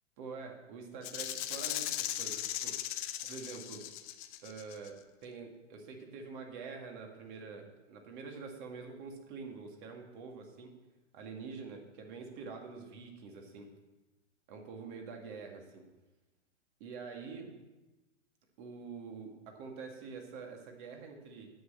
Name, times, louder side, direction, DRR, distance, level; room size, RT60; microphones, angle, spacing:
voice 1, 0.2-2.8 3.2-3.8 4.4-10.7 11.1-13.7 14.5-15.8 16.8-17.5 18.6-21.5, right 4 dB, 40° right, 2 dB, 2.1 m, -46 dB
Rattle (instrument), 1.0-4.9, left 13 dB, 30° left, 0.6 m, -38 dB
9.3 x 6.6 x 7.4 m, 1.1 s
hypercardioid pair, 125°, 37 cm